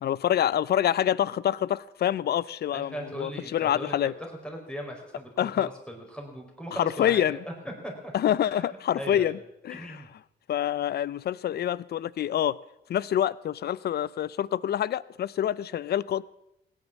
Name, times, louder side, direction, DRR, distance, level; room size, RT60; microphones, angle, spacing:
voice 1, 0.0-4.1 5.4-5.7 6.7-7.4 8.1-9.4 9.6-10.0 10.5-12.6 12.9-16.3, left 10 dB, 55° left, 0.5 m, -26 dB
voice 2, 2.7-7.4 7.6-8.1 8.4-8.7 9.0-9.4 9.7-10.1, equal, 5° left, 4.5 m, -39 dB
17.0 x 9.7 x 7.3 m
cardioid pair, 90°, 20 cm